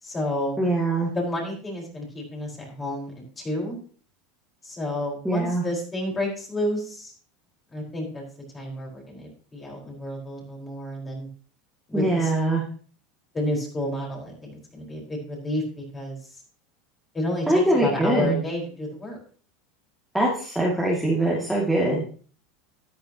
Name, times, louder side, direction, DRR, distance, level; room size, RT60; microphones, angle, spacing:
voice 1, 0.0-0.7 1.1-3.8 4.6-7.1 7.7-8.2 8.5-11.3 11.9-12.3 13.3-16.2 17.1-19.2, left 1 dB, 20° left, -1 dB, 4.7 m, -30 dB
voice 2, 0.6-1.1 5.2-5.6 11.9-12.6 17.5-18.4 20.1-22.0, right 1 dB, ahead, -5 dB, 2.4 m, -22 dB
13.0 x 9.6 x 2.9 m, 0.43 s
supercardioid pair, 120°, 0 cm